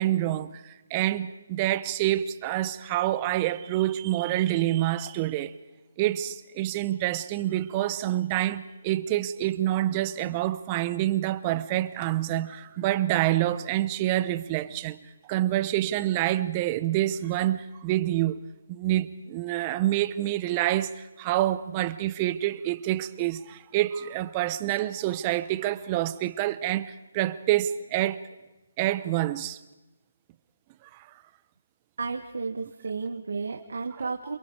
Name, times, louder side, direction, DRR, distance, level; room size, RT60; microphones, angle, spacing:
voice 1, 0.0-5.5 6.0-15.0 15.3-18.4 18.7-28.2 28.8-29.6 30.9-31.0 34.0-34.1, right 14 dB, 25° right, 0.9 m, -27 dB
voice 2, 32.0-34.4, right 4 dB, 75° right, 1.8 m, -32 dB
27.5 x 23.0 x 4.9 m
hypercardioid pair, 160°, 0 cm